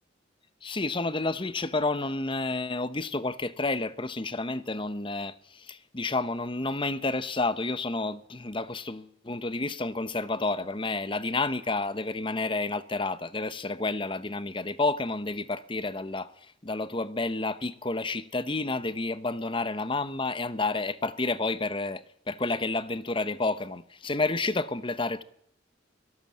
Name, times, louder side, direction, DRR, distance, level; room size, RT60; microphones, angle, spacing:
voice 1, 0.6-16.3 16.6-25.2, left 3 dB, 25° left, 1.0 m, -30 dB
24.0 x 17.5 x 7.6 m
head